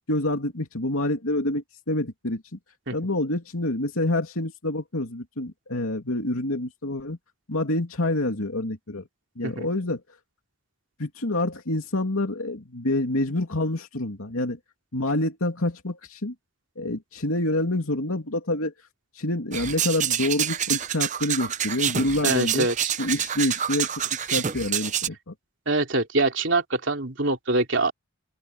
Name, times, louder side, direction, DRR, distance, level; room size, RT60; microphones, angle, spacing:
voice 1, 0.1-2.4 2.9-7.2 7.5-9.0 9.4-10.0 11.0-14.6 14.9-16.3 16.8-18.7 19.1-22.7 23.0-23.9 24.3-25.3, left 1 dB, 80° left, 2.8 m, -27 dB
sound 1, 19.5-25.1, right 9 dB, 35° right, 0.7 m, -27 dB
voice 2, 22.2-22.7 25.7-27.9, right 2 dB, 55° right, 3.3 m, -24 dB
open air
head